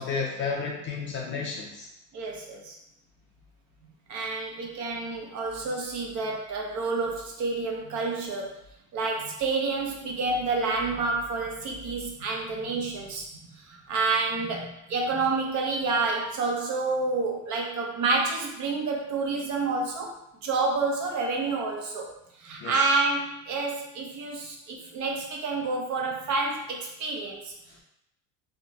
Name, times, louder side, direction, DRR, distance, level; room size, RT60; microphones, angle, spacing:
voice 1, 0.0-1.9 22.6-23.0 27.7-27.8, left 5 dB, 30° left, -1 dB, 0.4 m, -32 dB
voice 2, 2.1-2.8 4.1-8.6 8.9-20.1 20.4-22.1 22.4-27.5, right 3 dB, 45° right, 0 dB, 0.6 m, -29 dB
2.9 x 2.1 x 2.6 m, 0.82 s
supercardioid pair, 110°, 41 cm